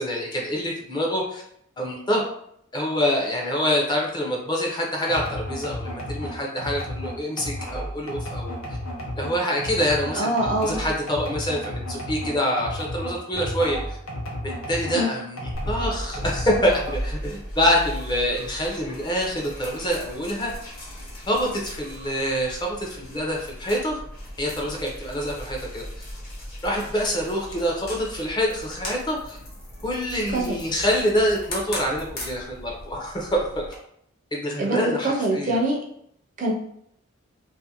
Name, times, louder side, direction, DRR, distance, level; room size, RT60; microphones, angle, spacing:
voice 1, 0.0-1.4 1.8-2.2 2.7-8.6 9.2-10.3 10.6-14.0 14.4-16.7 17.0-20.7 21.3-24.0 24.4-25.8 26.6-29.4 29.8-33.6 34.3-35.6, equal, 20° left, -1 dB, 0.5 m, -26 dB
sound 1, 5.1-15.0 15.4-17.1, equal, 85° left, 0.7 m, -33 dB
voice 2, 10.1-10.8 14.9-15.2 30.3-30.6 34.6-35.8 36.4-36.5, right 1 dB, 40° right, 0 dB, 0.4 m, -24 dB
sound 2, 13.3-15.1, right 2 dB, 85° right, 0.8 m, -41 dB
sound 3, 15.5-33.8, equal, 45° left, 0.8 m, -37 dB
2.5 x 2.4 x 2.8 m, 0.70 s
head